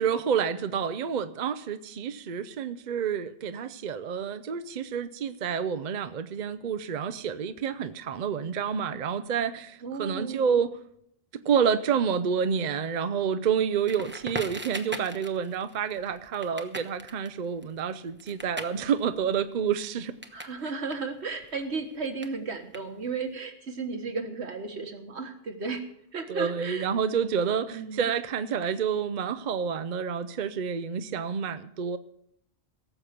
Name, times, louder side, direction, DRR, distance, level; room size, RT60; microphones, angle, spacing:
voice 1, 0.0-10.8 11.4-20.1 20.6-20.7 26.3-32.0, right 7 dB, 50° right, 11 dB, 0.7 m, -29 dB
voice 2, 9.8-10.6 20.3-25.8 26.1-26.9 27.7-28.1, right 4 dB, 75° right, 6 dB, 1.7 m, -34 dB
Crackle, 13.9-20.6 20.8-23.3, right 1 dB, 10° right, 0.9 m, -41 dB
17.5 x 7.4 x 6.6 m, 0.73 s
omnidirectional pair, 1.1 m